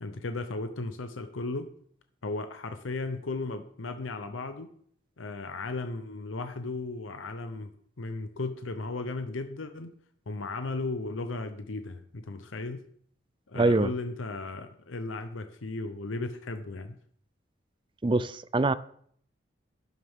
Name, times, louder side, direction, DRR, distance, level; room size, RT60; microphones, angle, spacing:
voice 1, 0.0-1.7 2.2-4.7 5.2-9.9 10.3-12.9 13.5-17.0, left 3 dB, 90° left, 0.8 m, -35 dB
voice 2, 13.5-13.9 18.0-18.7, right 2 dB, 25° right, 0.4 m, -24 dB
12.5 x 11.0 x 3.7 m
head